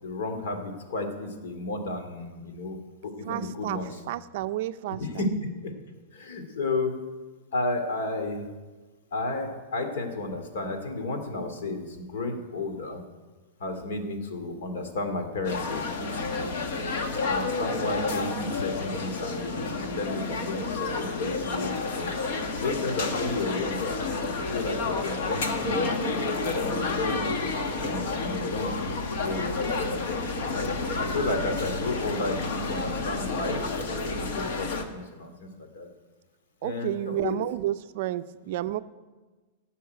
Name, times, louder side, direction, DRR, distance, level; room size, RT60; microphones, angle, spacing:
voice 1, 0.0-2.8 3.0-4.0 5.0-5.3 5.6-5.7 6.1-7.1 7.5-8.5 9.1-13.0 13.6-16.5 17.3-22.1 22.6-24.0 24.5-25.9 26.5-30.2 31.0-33.6 33.9-35.9 36.6-37.4, left 2 dB, 70° left, 5 dB, 2.3 m, -32 dB
voice 2, 3.3-3.8 4.1-5.0 36.6-38.8, right 14 dB, 45° right, 12 dB, 0.4 m, -31 dB
sound 1, 15.4-34.8, left 3 dB, 55° left, 1.5 m, -30 dB
15.0 x 5.7 x 9.3 m, 1.3 s
supercardioid pair, 170°, 0 cm